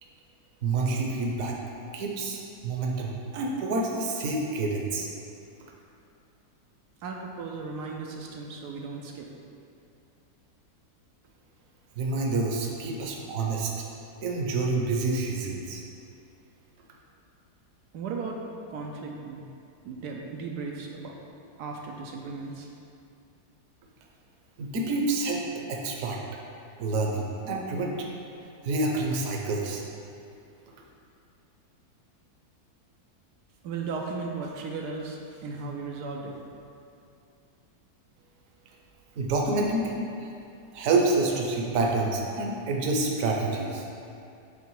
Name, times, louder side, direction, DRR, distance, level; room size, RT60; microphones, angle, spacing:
voice 1, 0.6-1.6 1.9-5.1 12.0-13.7 14.2-15.8 24.6-25.4 25.7-26.2 26.8-27.9 28.6-29.8 39.2-39.9 40.2-40.3 40.7-43.8, right 3 dB, 60° right, 0 dB, 1.1 m, -28 dB
voice 2, 7.0-9.3 17.9-18.4 18.7-19.4 19.8-21.1 21.6-22.7 33.6-36.4, right 4 dB, 85° right, 0 dB, 1.2 m, -36 dB
7.9 x 3.4 x 4.7 m, 2.5 s
omnidirectional pair, 1.7 m